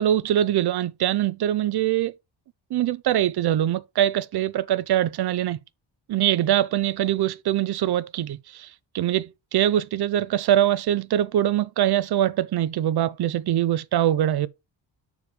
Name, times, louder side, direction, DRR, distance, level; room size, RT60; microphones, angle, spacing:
voice 1, 0.0-2.1 2.7-5.6 6.1-8.7 8.9-14.5, right 11 dB, 55° right, 0.7 m, -23 dB
7.0 x 4.8 x 4.8 m
wide cardioid pair, 165°, 47 cm